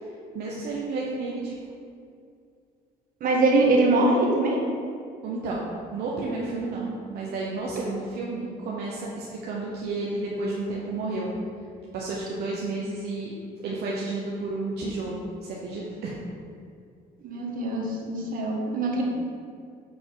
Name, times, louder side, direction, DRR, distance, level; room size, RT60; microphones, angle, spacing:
voice 1, 0.3-1.6 5.2-5.6 5.9-11.3 11.9-13.3 13.6-16.2, right 3 dB, 70° right, -4 dB, 1.0 m, -31 dB
voice 2, 3.2-4.6 17.2-19.0, right 2 dB, 55° right, -1 dB, 1.4 m, -22 dB
6.8 x 4.8 x 3.9 m, 2.4 s
cardioid pair, 110°, 17 cm